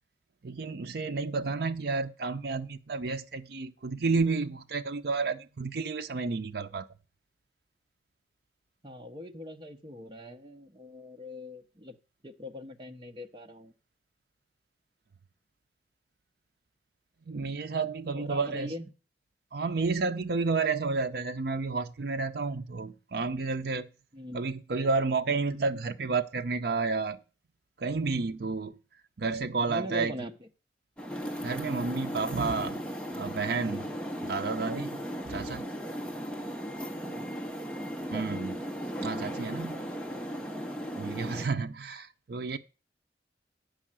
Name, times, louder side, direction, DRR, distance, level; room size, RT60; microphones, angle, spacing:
voice 1, 0.4-6.9 17.3-18.7 19.5-23.9 24.3-27.2 27.8-28.8 29.2-30.1 31.4-34.0 34.2-35.7 38.1-38.6 39.0-39.9 40.9-42.6, right 4 dB, 65° right, 0.5 m, -31 dB
voice 2, 8.8-11.9 12.2-13.7 18.1-18.8 24.1-24.4 29.7-30.3 36.6-36.7 37.0-37.3 38.1-38.4 41.0-41.1, equal, 25° right, 0.8 m, -41 dB
sound 1, 31.0-41.5, equal, 5° left, 0.8 m, -37 dB
8.9 x 5.5 x 7.4 m
head